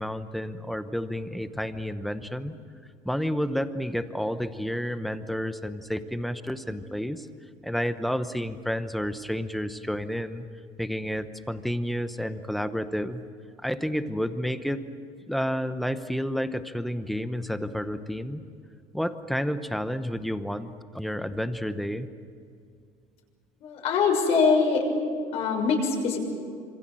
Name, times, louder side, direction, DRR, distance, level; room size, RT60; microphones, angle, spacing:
voice 1, 0.0-2.5 3.0-7.3 7.6-10.5 10.8-13.2 13.6-14.8 15.3-18.4 18.9-20.7 20.9-22.1, equal, ahead, 10 dB, 0.9 m, -30 dB
voice 2, 23.6-24.8 25.3-26.2, left 5 dB, 50° left, 2 dB, 6.5 m, -23 dB
27.5 x 26.5 x 7.7 m, 2.3 s
cardioid pair, 175°, 13 cm